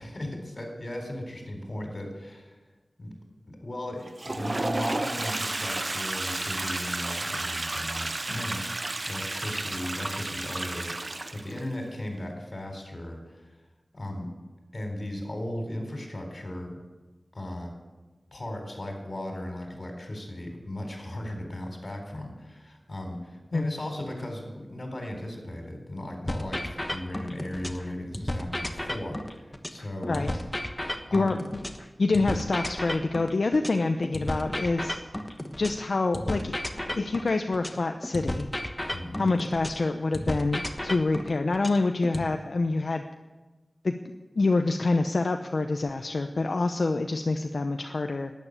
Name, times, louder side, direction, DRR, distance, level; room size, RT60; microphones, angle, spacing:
voice 1, 0.0-2.6 3.0-3.1 3.5-13.5 13.9-14.3 14.7-16.8 17.3-17.7 18.3-30.3 30.7-30.8 31.0-31.3 38.9-39.3, left 1 dB, 45° left, 3 dB, 4.0 m, -36 dB
Toilet flush, 4.0-11.7, right 2 dB, 40° right, 0.6 m, -32 dB
sound 1, 26.3-27.8 28.1-31.8 32.1-35.8 36.1-39.8 40.1-42.3, left 1 dB, 15° left, 1.3 m, -33 dB
voice 2, 31.1-31.6 32.0-34.9 35.6-36.5 36.9-38.5 39.2-43.0 43.8-43.9 44.4-48.3, left 3 dB, 70° left, 5 dB, 0.8 m, -26 dB
12.0 x 9.6 x 9.9 m, 1.2 s
wide cardioid pair, 75°, 0 cm